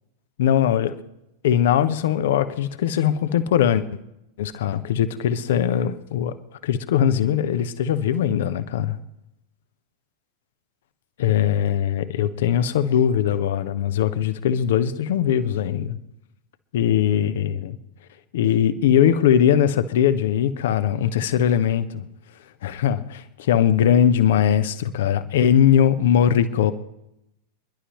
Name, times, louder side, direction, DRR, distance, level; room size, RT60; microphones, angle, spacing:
voice 1, 0.4-1.0 1.4-3.8 4.4-6.3 6.6-9.0 11.2-16.0 16.7-17.8 18.3-22.1 22.6-26.7, left 9 dB, 55° left, 1.0 m, -20 dB
29.0 x 11.5 x 3.2 m
figure-of-eight pair, 90°, 0 cm